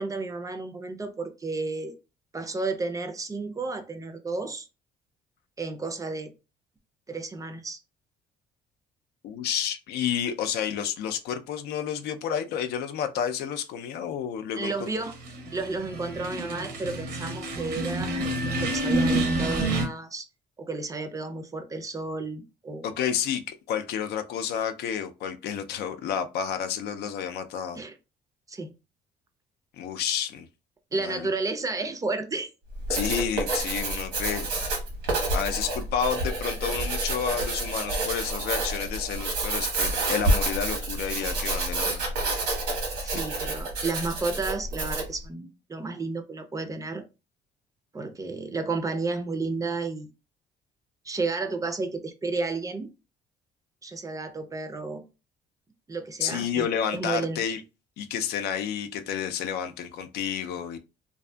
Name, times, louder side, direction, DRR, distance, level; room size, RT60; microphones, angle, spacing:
voice 1, 0.0-1.9 2.3-4.7 5.6-6.3 7.1-7.8 14.6-15.2 15.5-20.3 20.6-22.9 27.8-27.9 28.5-28.7 30.9-32.5 43.0-47.0 47.9-50.1 51.0-52.9 53.8-55.0 55.9-56.7 56.9-57.4, right 3 dB, 20° right, 0.4 m, -32 dB
voice 2, 9.2-14.9 22.8-27.8 29.8-30.5 30.9-31.3 32.9-34.5 35.3-42.1 43.0-43.2 56.2-57.6 58.0-60.8, left 8 dB, 75° left, 0.4 m, -30 dB
sound 1, 14.9-19.9, right 1 dB, 70° right, 0.7 m, -28 dB
Writing, 32.7-45.2, right 2 dB, 85° right, 1.1 m, -29 dB
2.6 x 2.5 x 2.2 m
cardioid pair, 110°, 17 cm